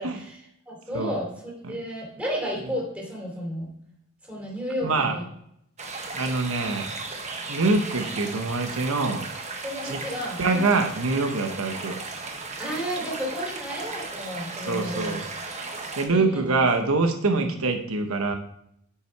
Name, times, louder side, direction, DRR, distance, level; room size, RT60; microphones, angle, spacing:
voice 1, 0.0-3.7 4.2-5.3 9.6-10.7 12.6-15.2 16.1-16.7 17.3-17.5, equal, 5° right, -3 dB, 3.3 m, -33 dB
voice 2, 4.8-5.1 6.1-6.9 7.5-9.2 9.9-10.0 10.4-12.0 14.6-15.2 16.0-18.4, right 3 dB, 70° right, 5 dB, 0.9 m, -24 dB
sound 1, 5.8-16.1, right 3 dB, 30° right, 1.2 m, -36 dB
9.7 x 5.7 x 4.6 m, 0.73 s
head